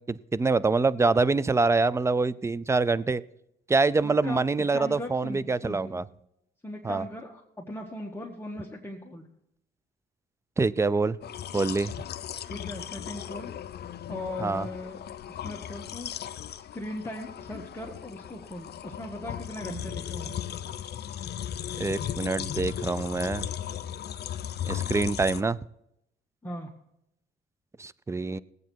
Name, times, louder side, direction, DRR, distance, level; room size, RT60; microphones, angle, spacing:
voice 1, 0.0-3.2 3.7-6.0 6.8-7.0 10.6-11.2 11.5-11.9 14.4-14.7 21.8-23.5 24.7-25.6 27.8-28.4, right 3 dB, 15° right, 0.4 m, -25 dB
voice 2, 4.0-4.4 4.7-6.0 6.6-9.2 12.5-13.5 14.1-15.0 15.3-16.1 16.7-20.3 26.4-26.7, left 1 dB, 10° left, 1.4 m, -38 dB
sound 1, 11.2-25.4, left 10 dB, 55° left, 0.6 m, -36 dB
18.5 x 8.2 x 4.6 m
cardioid pair, 90°, 20 cm